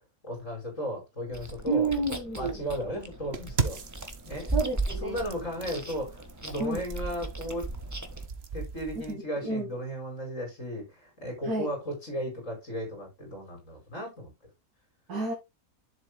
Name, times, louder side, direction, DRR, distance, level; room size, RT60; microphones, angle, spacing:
voice 1, 0.0-1.9 2.3-3.8 4.3-4.5 5.0-7.7 8.5-14.3, equal, 55° left, 5.5 m, -35 dB
Chewing mastication, 1.3-8.3, right 2 dB, 10° right, 1.3 m, -37 dB
voice 2, 1.7-2.6 4.5-5.2 6.6-6.8 9.1-9.7 11.4-11.7 15.1-15.3, right 3 dB, 85° right, 2.4 m, -30 dB
sound 1, 3.3-9.1, right 5 dB, 45° right, 1.2 m, -38 dB
11.0 x 7.5 x 2.3 m
omnidirectional pair, 1.6 m